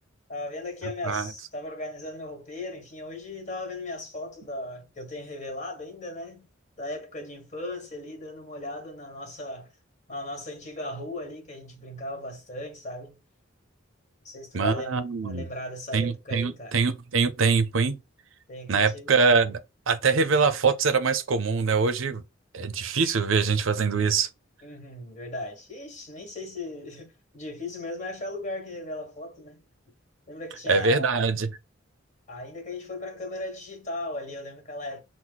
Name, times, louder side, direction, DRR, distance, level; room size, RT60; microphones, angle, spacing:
voice 1, 0.3-6.5 6.8-9.7 10.1-13.1 14.2-16.8 18.5-19.1 24.6-29.6 30.3-31.3 32.3-35.0, left 1 dB, 35° left, 1.7 m, -37 dB
voice 2, 14.5-15.5 15.9-18.0 18.7-19.6 19.9-22.2 22.5-24.3 30.7-31.5, right 4 dB, 70° right, 0.6 m, -23 dB
6.2 x 2.1 x 3.9 m
head